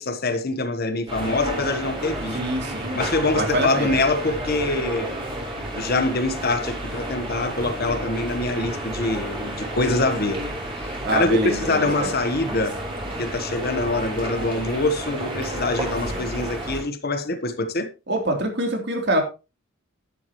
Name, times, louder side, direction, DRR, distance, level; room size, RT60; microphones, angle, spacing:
voice 1, 0.0-2.4 2.9-5.1 5.7-10.4 10.7-12.8 13.2-17.9, left 2 dB, 45° left, 1.1 m, -24 dB
sound 1, 1.1-16.8, right 1 dB, 25° right, 3.9 m, -31 dB
voice 2, 2.3-3.0 3.3-3.9 11.0-12.1 18.1-19.2, right 1 dB, 50° right, 3.2 m, -24 dB
11.5 x 11.0 x 3.1 m
head